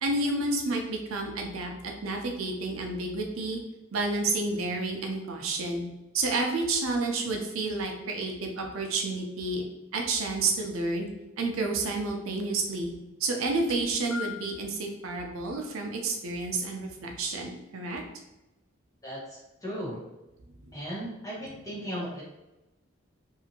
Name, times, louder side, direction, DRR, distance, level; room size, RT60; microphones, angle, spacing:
voice 1, 0.0-3.6 3.9-5.8 6.1-9.6 9.9-11.1 11.4-12.9 13.2-18.0 20.6-20.7, right 3 dB, 85° right, 2 dB, 0.5 m, -30 dB
sound 1, 13.5-14.6 15.5-15.7 16.8-16.9, left 7 dB, 85° left, 0.7 m, -41 dB
voice 2, 19.0-20.0 20.7-22.2, equal, 15° left, -7 dB, 1.0 m, -36 dB
2.7 x 2.5 x 2.7 m, 0.97 s
head